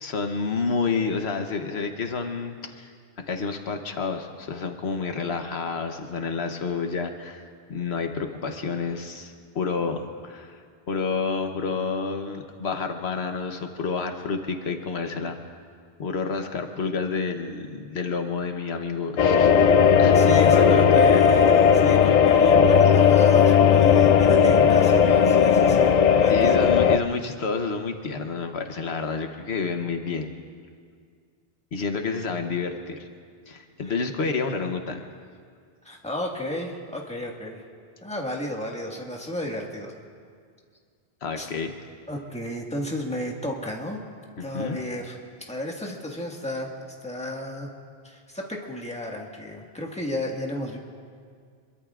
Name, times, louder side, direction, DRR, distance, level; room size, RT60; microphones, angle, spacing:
voice 1, 0.0-2.9 3.3-7.4 7.7-10.6 10.9-15.4 16.0-19.7 19.9-21.2 26.3-30.3 31.7-33.1 33.5-35.0 41.2-41.7 44.4-44.8, left 4 dB, 75° left, 5 dB, 1.2 m, -29 dB
sound 1, 19.2-27.0, left 7 dB, 55° left, 0.5 m, -16 dB
voice 2, 20.1-26.0 26.2-26.7 33.8-33.9 35.8-37.6 38.0-39.9 41.4-41.5 42.1-44.0 44.4-45.2 45.5-46.7 47.0-47.7 48.0-50.8, left 1 dB, 5° left, -1 dB, 1.7 m, -32 dB
26.0 x 22.5 x 2.5 m, 2.1 s
omnidirectional pair, 1.1 m